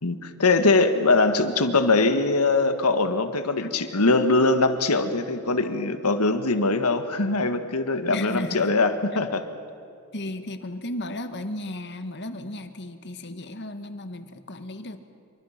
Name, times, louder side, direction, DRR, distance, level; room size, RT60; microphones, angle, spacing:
voice 1, 0.0-9.4 13.3-13.4, left 3 dB, 90° left, 8 dB, 1.6 m, -22 dB
voice 2, 8.1-8.7 10.1-15.0, left 1 dB, 50° left, 9 dB, 1.5 m, -35 dB
27.0 x 24.5 x 5.9 m, 2.6 s
head